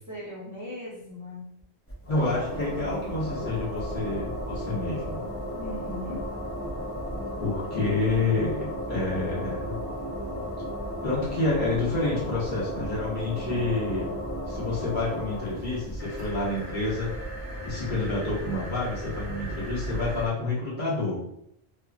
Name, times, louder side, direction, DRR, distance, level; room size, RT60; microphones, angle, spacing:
voice 1, 0.1-1.4 5.5-6.2, left 1 dB, 20° right, -9 dB, 0.7 m, -38 dB
sound 1, 1.9-20.3, equal, 20° left, 0.4 m, -35 dB
voice 2, 2.1-5.2 7.4-9.8 11.0-14.1 14.5-17.1 17.6-21.2, left 2 dB, 50° left, -7 dB, 1.1 m, -28 dB
3.0 x 2.3 x 2.4 m, 0.73 s
omnidirectional pair, 1.1 m